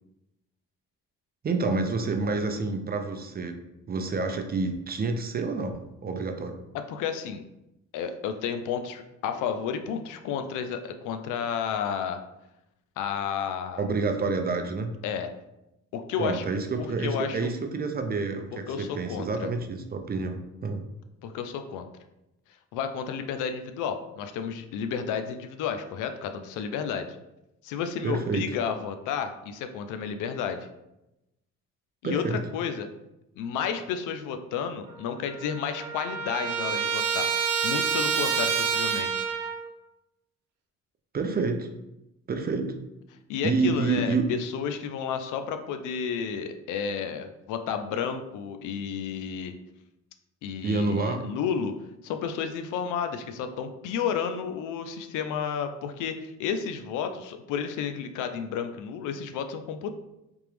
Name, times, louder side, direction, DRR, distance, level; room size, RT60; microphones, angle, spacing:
voice 1, 1.4-3.6 3.9-6.6 13.8-14.9 16.2-20.8 28.0-28.5 32.0-32.4 41.1-41.7 42.3-42.8 43.4-44.3 50.6-51.3, right 3 dB, 30° right, 6 dB, 0.5 m, -28 dB
voice 2, 6.9-7.4 7.9-12.2 13.0-13.8 15.0-15.3 15.9-16.5 16.8-17.5 18.5-19.5 21.2-21.9 22.7-27.1 27.6-30.7 32.0-32.9 33.4-37.3 37.6-39.1 43.3-49.5 50.4-51.7 52.0-59.9, left 7 dB, 90° left, 7 dB, 0.5 m, -31 dB
Trumpet, 34.9-35.0 35.2-39.7, right 6 dB, 85° right, 0.6 m, -28 dB
3.5 x 2.9 x 3.2 m, 0.91 s
cardioid pair, 90°, 30 cm